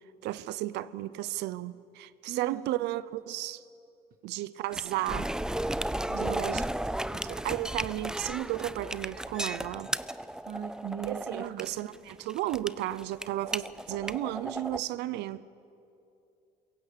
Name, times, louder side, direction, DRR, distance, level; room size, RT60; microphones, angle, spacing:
voice 1, 0.2-3.6 4.2-5.3 6.1-6.6 7.2-9.9 11.1-15.4, right 15 dB, 85° right, 0.7 m, -34 dB
voice 2, 2.3-2.6 6.0-6.4 10.5-11.6, right 9 dB, 60° right, 1.2 m, -39 dB
sound 1, 4.7-14.8, right 1 dB, 5° right, 0.4 m, -34 dB
22.5 x 16.5 x 8.3 m
cardioid pair, 110°, 17 cm